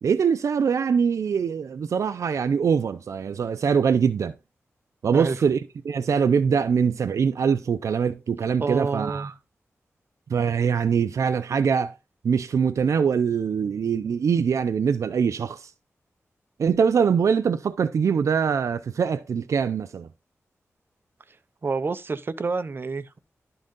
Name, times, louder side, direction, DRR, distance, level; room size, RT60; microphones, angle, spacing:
voice 1, 0.0-4.3 5.0-5.6 5.8-9.3 10.3-11.9 12.2-15.7 16.6-20.1, right 6 dB, 80° right, 0.5 m, -23 dB
voice 2, 8.6-9.3 21.6-23.2, right 4 dB, 45° right, 0.8 m, -28 dB
11.5 x 3.9 x 3.8 m
wide cardioid pair, 85°, 5 cm